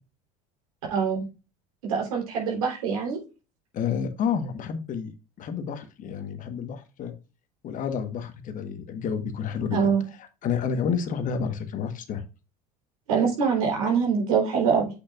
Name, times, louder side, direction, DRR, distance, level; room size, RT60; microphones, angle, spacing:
voice 1, 0.9-1.2 1.8-3.2 9.7-10.0 13.1-14.9, right 6 dB, 85° right, 0 dB, 3.8 m, -24 dB
voice 2, 3.7-5.1 5.4-7.1 7.6-9.9 10.4-12.2, left 7 dB, 45° left, 8 dB, 1.4 m, -30 dB
8.2 x 6.3 x 2.5 m, 0.30 s
hypercardioid pair, 80°, 18 cm